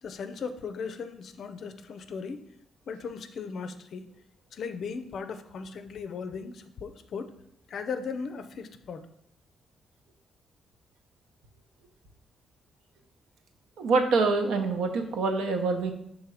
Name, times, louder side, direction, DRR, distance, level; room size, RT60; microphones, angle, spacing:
voice 1, 0.0-2.5 2.9-4.1 4.5-7.3 7.7-9.1, left 5 dB, 55° left, 9 dB, 0.5 m, -37 dB
voice 2, 13.8-15.9, right 3 dB, 90° right, 5 dB, 0.9 m, -25 dB
6.4 x 3.6 x 4.8 m, 0.77 s
cardioid pair, 160°, 0 cm